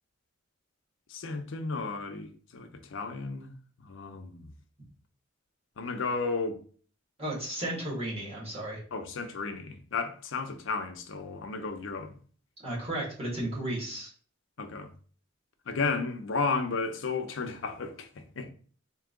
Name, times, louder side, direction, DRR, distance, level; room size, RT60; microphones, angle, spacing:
voice 1, 1.1-3.5 3.8-4.5 5.8-6.6 8.9-12.2 14.6-14.9 15.7-18.5, left 4 dB, 65° left, 0.6 m, -33 dB
voice 2, 7.2-8.8 12.6-14.1, right 1 dB, 30° right, 1.8 m, -34 dB
3.7 x 2.7 x 3.7 m
head